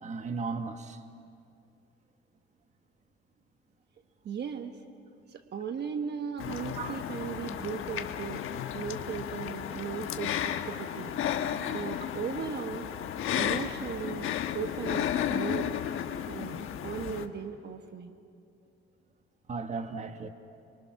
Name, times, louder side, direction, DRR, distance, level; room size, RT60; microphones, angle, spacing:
voice 1, 0.0-1.0 6.7-7.0 19.5-20.3, right 4 dB, 35° right, 1.4 m, -35 dB
voice 2, 4.2-4.7 5.3-8.4 8.7-11.1 11.7-12.9 13.3-15.7 16.3-18.2, right 7 dB, 55° right, 1.2 m, -37 dB
sound 1, 6.4-17.3, left 10 dB, 85° left, 1.1 m, -33 dB
29.5 x 24.0 x 6.1 m
cardioid pair, 130°, 21 cm